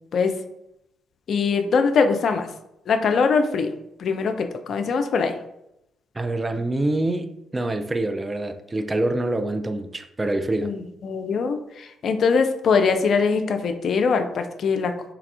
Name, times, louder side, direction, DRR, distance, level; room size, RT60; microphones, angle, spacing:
voice 1, 1.3-2.5 2.9-3.7 4.0-5.3 10.6-14.9, left 5 dB, 50° left, 7 dB, 0.3 m, -22 dB
voice 2, 6.1-10.7, right 2 dB, 25° right, 8 dB, 0.3 m, -26 dB
3.3 x 2.4 x 3.3 m, 0.83 s
figure-of-eight pair, 40°, 0 cm